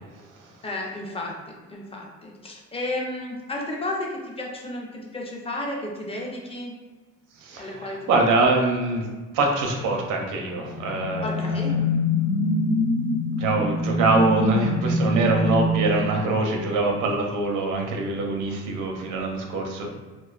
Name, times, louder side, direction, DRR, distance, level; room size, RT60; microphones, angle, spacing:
voice 1, 0.6-6.8 7.6-8.3 11.2-11.8, left 1 dB, 20° left, -1 dB, 0.5 m, -33 dB
voice 2, 7.4-9.1 9.3-11.9 12.4-12.5 13.4-19.9, right 2 dB, 85° right, 1 dB, 0.5 m, -24 dB
sound 1, 10.4-16.9, left 1 dB, 75° left, 0.6 m, -25 dB
2.4 x 2.2 x 2.3 m, 1.3 s
cardioid pair, 90°, 30 cm